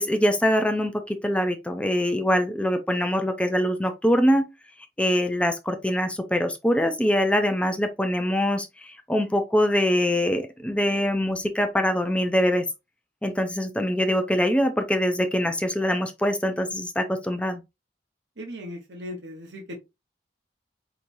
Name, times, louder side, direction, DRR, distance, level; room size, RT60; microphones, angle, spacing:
voice 1, 0.0-4.4 5.0-12.7 13.2-17.6, equal, 5° left, 0.5 m, -23 dB
voice 2, 18.4-19.8, left 1 dB, 90° right, 1.1 m, -37 dB
5.2 x 3.1 x 2.7 m
head